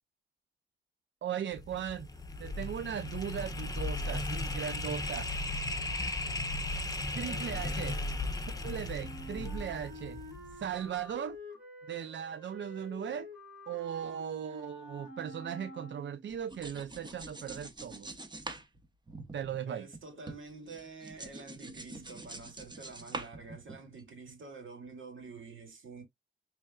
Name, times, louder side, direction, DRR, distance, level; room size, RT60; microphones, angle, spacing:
voice 1, 1.2-2.1 2.4-5.3 7.1-8.0 8.6-10.2 10.5-11.4 11.9-13.3 13.7-18.1 19.3-19.9, right 9 dB, 70° right, 0.4 m, -38 dB
sound 1, 1.5-10.7, left 2 dB, 20° left, 0.9 m, -36 dB
voice 2, 7.1-7.9 19.7-26.0, right 4 dB, 85° right, 2.0 m, -48 dB
Wind instrument woodwind instrument, 9.0-16.3, left 1 dB, 5° right, 3.8 m, -48 dB
sound 2, 16.3-20.0 20.3-24.0, right 2 dB, 20° right, 0.8 m, -45 dB
5.3 x 3.3 x 2.3 m
wide cardioid pair, 130°, 20 cm